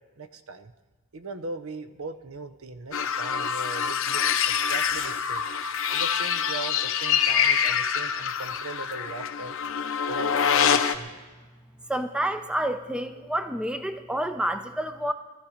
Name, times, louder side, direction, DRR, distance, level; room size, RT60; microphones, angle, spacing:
voice 1, 0.2-0.7 1.1-5.5 5.9-9.6 10.1-11.1, right 3 dB, 70° right, 10 dB, 0.8 m, -39 dB
sound 1, 2.9-11.0, left 7 dB, 65° left, 0.8 m, -25 dB
voice 2, 11.9-15.1, right 1 dB, 5° right, 8 dB, 0.5 m, -29 dB
19.0 x 13.5 x 5.0 m, 1.3 s
head